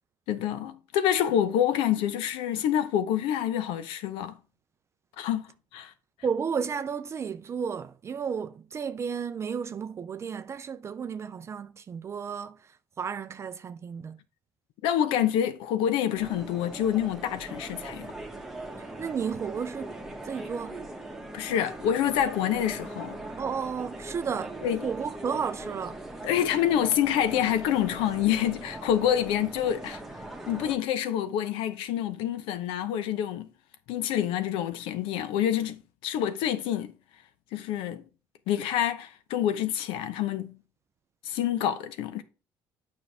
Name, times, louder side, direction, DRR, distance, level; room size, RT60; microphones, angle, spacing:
voice 1, 0.3-4.3 5.2-5.4 5.7-5.9 14.8-18.1 21.3-23.2 24.6-24.8 26.2-30.0 30.5-33.5 33.9-36.9 37.5-38.0 38.5-40.6 41.2-42.2, left 10 dB, 85° left, 0.8 m, -27 dB
voice 2, 6.2-14.2 19.0-20.0 20.2-20.8 23.4-26.0, right 6 dB, 30° right, 0.4 m, -33 dB
sound 1, 16.2-30.8, right 2 dB, 5° right, 1.3 m, -40 dB
8.8 x 5.3 x 3.4 m
cardioid pair, 120°, 9 cm